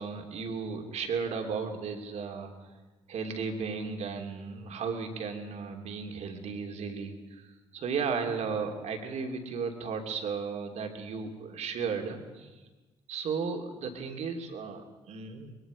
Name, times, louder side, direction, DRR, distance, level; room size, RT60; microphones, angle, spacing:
voice 1, 0.0-2.7 3.1-7.5 7.7-12.5 13.1-15.5, right 5 dB, 60° right, 3 dB, 3.0 m, -35 dB
23.5 x 21.5 x 5.1 m, 1.2 s
hypercardioid pair, 45°, 13 cm